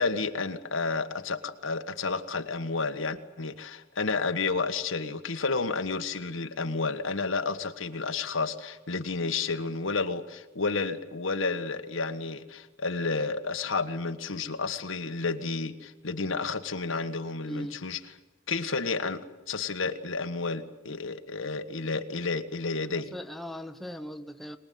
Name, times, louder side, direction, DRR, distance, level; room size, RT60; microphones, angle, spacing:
voice 1, 0.0-18.0 18.5-23.1, left 4 dB, 90° left, 1.5 m, -31 dB
voice 2, 17.4-17.8 22.8-24.6, equal, ahead, 1.0 m, -39 dB
24.0 x 20.5 x 9.5 m
head